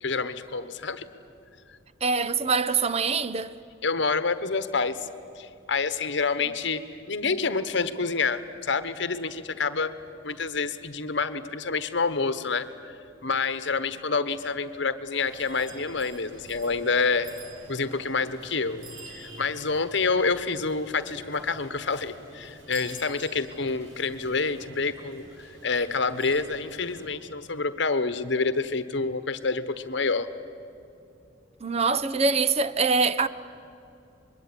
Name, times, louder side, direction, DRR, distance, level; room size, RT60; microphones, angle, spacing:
voice 1, 0.0-1.1 3.8-5.1 5.4-9.9 10.2-12.9 13.2-17.3 17.7-30.3, left 4 dB, 65° left, 1.2 m, -28 dB
voice 2, 2.0-3.5 31.6-33.3, right 4 dB, 35° right, 0.7 m, -24 dB
sound 1, 15.2-27.1, right 2 dB, 80° right, 4.5 m, -47 dB
25.0 x 22.0 x 9.9 m
head